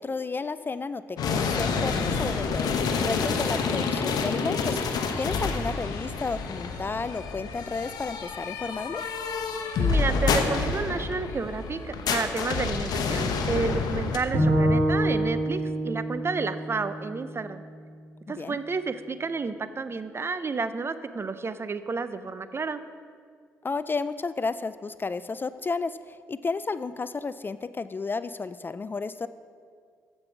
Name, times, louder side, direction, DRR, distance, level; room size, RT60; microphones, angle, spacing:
voice 1, 0.0-4.8 5.2-9.0 18.3-18.6 23.6-29.3, left 4 dB, 30° left, 14 dB, 0.3 m, -32 dB
sound 1, 1.2-14.2, left 4 dB, 65° left, 0.9 m, -28 dB
voice 2, 9.8-17.6 18.3-22.8, right 4 dB, 35° right, 12 dB, 0.6 m, -31 dB
Bowed string instrument, 14.3-17.6, right 1 dB, 75° right, 2.2 m, -26 dB
14.5 x 5.4 x 4.6 m, 2.1 s
hypercardioid pair, 45°, 7 cm